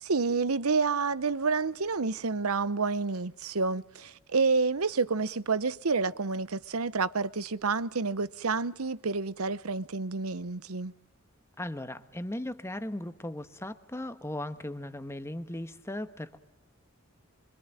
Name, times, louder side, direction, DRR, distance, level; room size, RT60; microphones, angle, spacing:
voice 1, 0.0-10.9, right 4 dB, 90° right, 1.0 m, -29 dB
voice 2, 11.6-16.4, left 1 dB, 10° left, 1.3 m, -37 dB
25.5 x 25.5 x 9.1 m
head